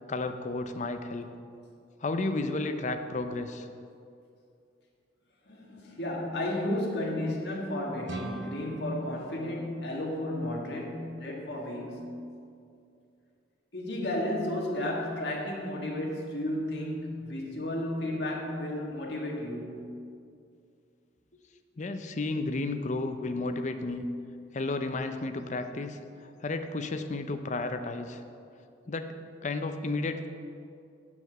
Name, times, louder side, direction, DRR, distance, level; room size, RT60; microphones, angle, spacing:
voice 1, 0.1-1.3 2.0-3.7 21.8-24.1 24.5-26.0 26.4-28.2 28.9-29.1 29.4-30.3, left 2 dB, 40° left, 8 dB, 0.6 m, -32 dB
voice 2, 5.5-12.3 13.7-20.0, left 1 dB, 60° left, -2 dB, 1.8 m, -33 dB
sound 1, 8.1-10.8, right 2 dB, 75° right, 0.8 m, -44 dB
7.9 x 6.0 x 7.5 m, 2.4 s
head